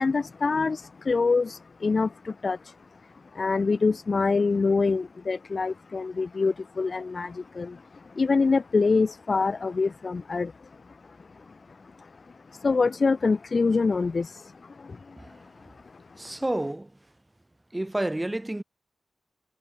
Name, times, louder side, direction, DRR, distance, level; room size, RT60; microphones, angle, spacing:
voice 1, 0.0-2.8 3.3-16.4, left 4 dB, 40° left, 0.8 m, -26 dB
voice 2, 16.2-17.0 17.7-18.6, right 1 dB, 10° right, 5.4 m, -30 dB
wide cardioid pair, 145°, 0 cm